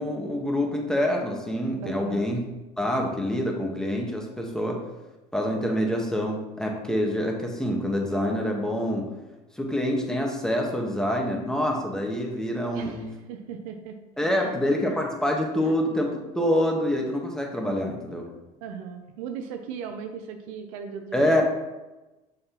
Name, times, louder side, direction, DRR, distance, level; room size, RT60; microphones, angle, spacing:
voice 1, 0.0-2.4 2.8-4.8 5.3-9.1 9.6-13.1 14.2-18.3 21.1-21.4, left 1 dB, 5° left, 0 dB, 1.5 m, -26 dB
voice 2, 1.8-2.2 12.7-14.0 14.3-14.7 15.6-15.7 18.6-21.4, right 7 dB, 70° right, 6 dB, 0.7 m, -38 dB
6.4 x 5.8 x 3.0 m, 1.1 s
hypercardioid pair, 75°, 19 cm